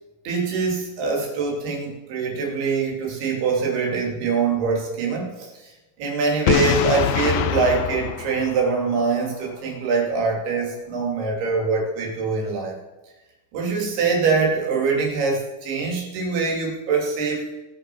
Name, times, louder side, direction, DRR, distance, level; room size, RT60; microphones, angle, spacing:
voice 1, 0.2-5.7 6.0-12.8 13.5-17.6, right 4 dB, 90° right, 0 dB, 4.7 m, -24 dB
Boom, 6.5-9.3, left 11 dB, 80° left, 2.5 m, -24 dB
19.5 x 6.6 x 6.1 m, 1.1 s
omnidirectional pair, 4.4 m